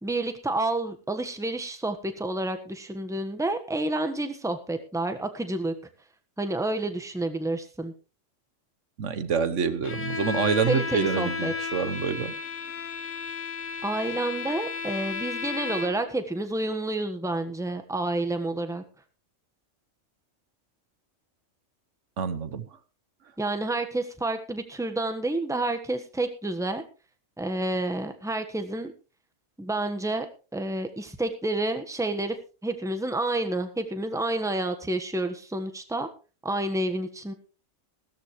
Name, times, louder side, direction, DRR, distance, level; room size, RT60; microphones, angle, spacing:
voice 1, 0.0-5.7 6.4-7.9 10.6-11.5 13.8-18.8 23.4-26.8 27.4-28.9 29.6-30.3 30.5-32.3 32.6-36.1 36.4-37.3, right 2 dB, 5° right, 7 dB, 1.2 m, -29 dB
voice 2, 9.0-12.3 22.2-22.6, right 6 dB, 75° right, 12 dB, 1.3 m, -27 dB
Bowed string instrument, 9.8-16.2, left 5 dB, 80° left, 1.7 m, -33 dB
16.0 x 13.5 x 3.2 m, 0.34 s
omnidirectional pair, 1.3 m